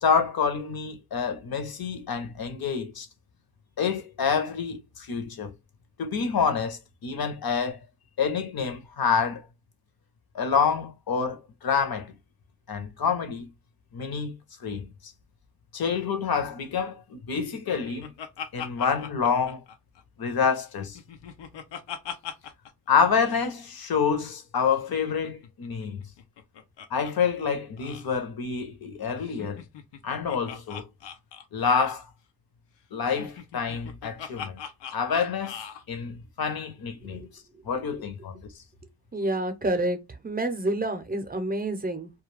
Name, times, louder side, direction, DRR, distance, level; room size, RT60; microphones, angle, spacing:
voice 1, 0.0-3.1 3.8-5.5 6.0-7.8 8.2-9.4 10.3-12.1 12.7-13.5 13.9-14.3 14.6-15.1 15.7-18.1 18.5-19.6 20.2-21.0 22.9-26.0 26.9-29.6 30.0-30.9 31.5-32.0 32.9-34.6 34.9-35.6 35.9-37.3 37.6-38.5, left 6 dB, 60° left, 0.8 m, -27 dB
Laughter, 17.3-20.3 20.6-22.7 23.0-23.1 23.2-23.5 24.7-27.1 27.4-27.5 27.8-28.1 29.2-32.0 33.0-35.8, left 8 dB, 90° left, 0.6 m, -41 dB
voice 2, 39.1-40.0 40.2-42.1, right 1 dB, 20° right, 0.6 m, -28 dB
2.3 x 2.3 x 3.2 m
cardioid pair, 65°, 42 cm